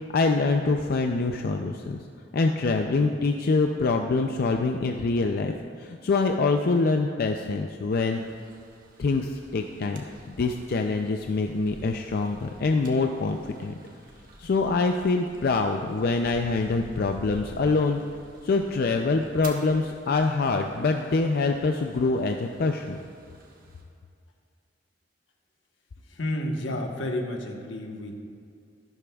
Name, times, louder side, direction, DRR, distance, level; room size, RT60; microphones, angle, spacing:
voice 1, 0.1-2.0 2.3-5.5 5.8-8.2 9.0-13.7 14.4-18.0 18.4-23.0, left 3 dB, 55° left, 4 dB, 0.4 m, -25 dB
sound 1, 7.9-23.8, right 2 dB, 50° right, 1.3 m, -50 dB
voice 2, 26.1-28.2, left 1 dB, 85° left, 2 dB, 1.2 m, -31 dB
13.0 x 12.0 x 2.3 m, 2.3 s
head